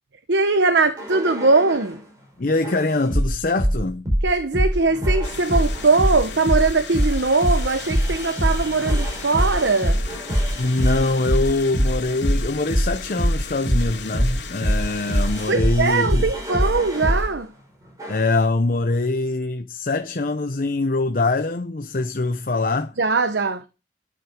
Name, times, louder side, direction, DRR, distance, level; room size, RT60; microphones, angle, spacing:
voice 1, 0.3-2.0 4.2-10.0 15.5-17.5 23.0-23.6, right 3 dB, 75° right, 1.0 m, -20 dB
sound 1, 1.0-2.0 2.6-17.3 18.0-18.4, equal, 20° right, 5.0 m, -23 dB
voice 2, 2.4-4.1 10.6-16.3 18.1-22.9, left 2 dB, 50° left, 0.8 m, -23 dB
sound 2, 5.2-15.5, left 5 dB, 80° left, 2.7 m, -37 dB
12.5 x 6.1 x 6.3 m
head